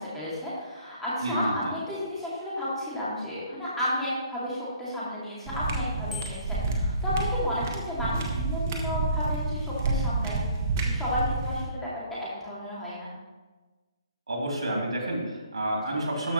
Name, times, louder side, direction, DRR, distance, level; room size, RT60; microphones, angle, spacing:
voice 1, 0.0-10.4 10.8-13.1 15.9-16.0, left 1 dB, 5° left, -9 dB, 2.3 m, -32 dB
voice 2, 1.2-1.7 14.3-16.3, right 1 dB, 85° right, -1 dB, 3.0 m, -29 dB
sound 1, 5.5-11.6, right 2 dB, 30° right, 1.2 m, -29 dB
Bicycle bell, 6.1-6.7, left 5 dB, 85° left, 2.3 m, -40 dB
13.0 x 5.6 x 3.1 m, 1.3 s
hypercardioid pair, 160°, 3 cm